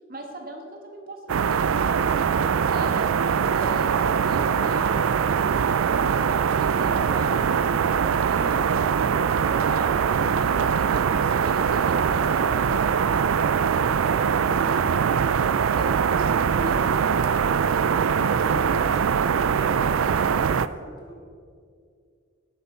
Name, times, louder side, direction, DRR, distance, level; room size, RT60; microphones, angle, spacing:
voice 1, 0.1-3.1 3.5-8.9 9.5-13.7 14.4-14.8 15.4-17.4, right 1 dB, 45° right, 2 dB, 1.4 m, -39 dB
sound 1, 1.3-20.7, right 7 dB, 80° right, 0.4 m, -22 dB
voice 2, 14.2-15.4 17.8-21.2, equal, 20° left, -2 dB, 2.1 m, -43 dB
18.5 x 8.0 x 4.4 m, 2.2 s
head